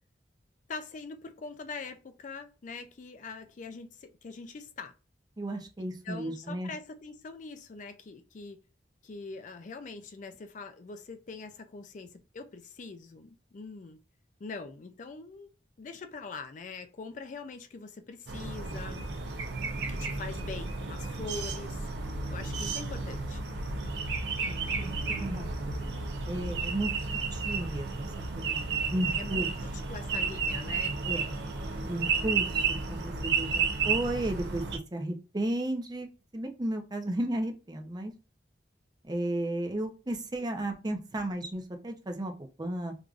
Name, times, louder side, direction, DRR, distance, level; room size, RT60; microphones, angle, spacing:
voice 1, 0.7-4.9 6.0-8.6 9.0-14.0 14.4-15.5 15.8-19.0 19.8-21.8 22.3-23.4 29.2-31.0, left 4 dB, 45° left, 0.4 m, -43 dB
voice 2, 5.4-6.7 24.4-25.7 26.3-26.9 27.3-28.1 28.3-29.5 31.0-31.3 31.8-38.1 39.0-42.9, right 1 dB, 25° right, 0.6 m, -34 dB
sound 1, 18.3-34.8, right 4 dB, 80° right, 0.6 m, -32 dB
4.7 x 2.5 x 2.4 m
head